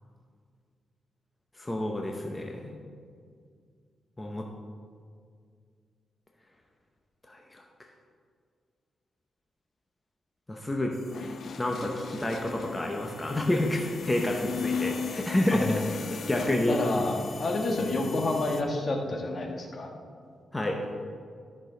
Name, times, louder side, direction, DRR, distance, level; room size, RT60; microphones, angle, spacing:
voice 1, 1.6-2.8 4.2-4.4 7.3-7.6 10.5-11.0 11.6-15.8 16.1-16.8 20.5-20.8, left 1 dB, 15° left, 1 dB, 0.8 m, -29 dB
sound 1, 10.9-18.6, left 5 dB, 65° left, 0.6 m, -38 dB
voice 2, 15.5-15.8 16.3-19.9, left 2 dB, 45° left, 1 dB, 1.4 m, -29 dB
13.0 x 6.3 x 4.0 m, 2.1 s
cardioid pair, 95°, 0 cm